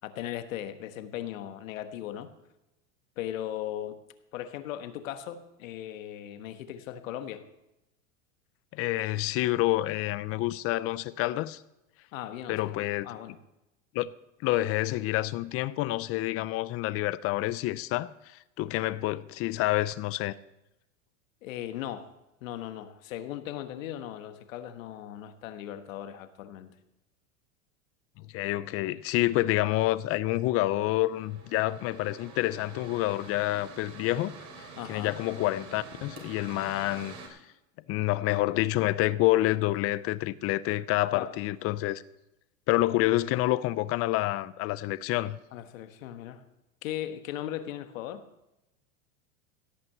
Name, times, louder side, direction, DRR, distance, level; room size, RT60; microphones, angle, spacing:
voice 1, 0.0-2.3 3.2-4.0 4.3-7.4 12.1-13.4 21.4-22.1 22.4-26.7 34.8-35.2 41.1-41.3 45.5-46.4 46.8-48.2, left 11 dB, 80° left, 1.4 m, -38 dB
voice 2, 8.7-11.6 12.5-13.1 13.9-14.1 14.4-18.1 18.6-20.3 28.2-34.3 34.9-37.4 37.9-42.0 42.7-45.4, left 16 dB, 35° left, 0.5 m, -28 dB
Mechanical fan, 30.2-37.3, right 4 dB, 40° right, 3.3 m, -47 dB
16.5 x 5.9 x 7.8 m
supercardioid pair, 130°, 39 cm